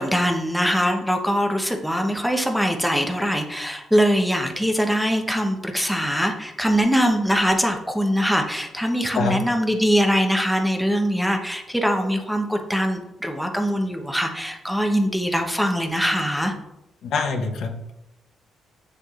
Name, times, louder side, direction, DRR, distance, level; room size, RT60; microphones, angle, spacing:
voice 1, 0.0-16.5, equal, ahead, 3 dB, 0.9 m, -22 dB
voice 2, 17.0-17.9, left 4 dB, 70° left, 4 dB, 0.9 m, -25 dB
7.6 x 6.8 x 2.5 m, 0.88 s
cardioid pair, 90°, 0 cm